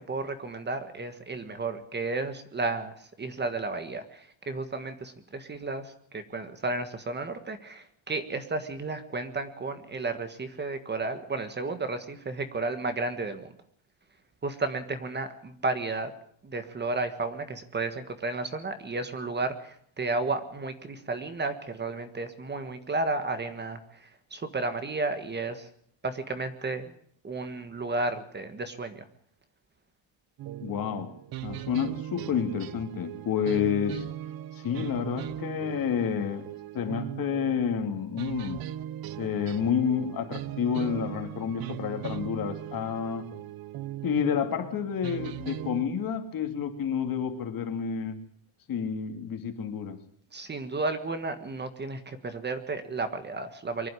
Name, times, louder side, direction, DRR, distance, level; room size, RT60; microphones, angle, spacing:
voice 1, 0.0-13.5 14.4-16.1 16.4-25.7 26.0-26.9 27.2-29.0 50.3-53.9, right 3 dB, 20° right, 9 dB, 1.6 m, -33 dB
sound 1, 30.4-45.8, right 12 dB, 50° right, 0.8 m, -39 dB
voice 2, 30.6-31.1 31.4-34.0 34.6-36.4 36.7-38.6 39.2-43.2 44.0-48.1 48.7-50.0, left 7 dB, 45° left, 6 dB, 2.7 m, -29 dB
24.0 x 11.5 x 9.8 m, 0.64 s
cardioid pair, 160°, 47 cm